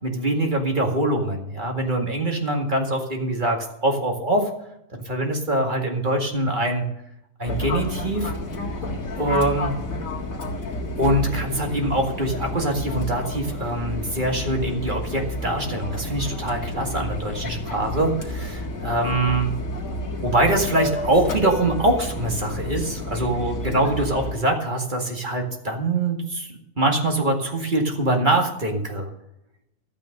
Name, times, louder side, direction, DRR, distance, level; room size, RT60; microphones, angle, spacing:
voice 1, 0.0-4.5 5.1-6.9 7.4-8.3 9.2-9.8 11.0-18.6 18.8-19.5 20.2-26.5 26.8-29.1, right 1 dB, 35° right, 2 dB, 2.2 m, -23 dB
Fixed-wing aircraft airplane, 7.4-24.3, left 1 dB, 75° left, 2.3 m, -30 dB
12.5 x 9.2 x 6.6 m, 0.80 s
omnidirectional pair, 1.5 m